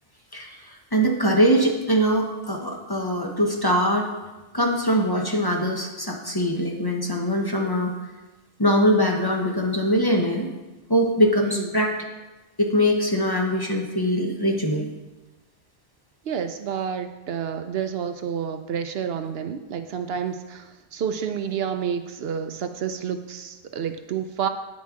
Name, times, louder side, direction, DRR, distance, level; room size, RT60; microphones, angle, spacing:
voice 1, 0.3-4.1 4.5-7.9 8.6-10.5 10.9-11.9 12.6-14.9, equal, 25° left, 1 dB, 0.8 m, -22 dB
voice 2, 11.4-11.7 16.2-24.5, right 8 dB, 70° right, 9 dB, 0.8 m, -29 dB
9.5 x 8.0 x 3.7 m, 1.1 s
omnidirectional pair, 1.1 m